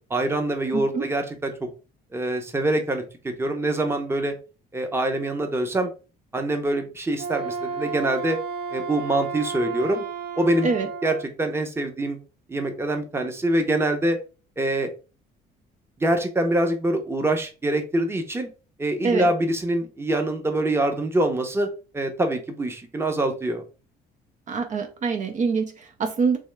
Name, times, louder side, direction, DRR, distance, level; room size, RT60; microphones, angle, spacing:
voice 1, 0.1-1.7 2.1-4.3 4.7-5.9 6.3-8.4 8.7-10.0 10.4-10.7 11.0-12.2 12.5-14.2 14.6-14.9 16.0-18.5 18.8-21.7 21.9-23.6, right 1 dB, 15° right, 6 dB, 0.8 m, -24 dB
voice 2, 0.7-1.1 10.6-10.9 19.0-19.3 24.5-26.4, right 5 dB, 45° right, 6 dB, 0.6 m, -25 dB
Wind instrument woodwind instrument, 7.1-11.2, right 5 dB, 70° right, 1.0 m, -32 dB
3.4 x 3.1 x 3.2 m, 0.33 s
cardioid pair, 110°, 17 cm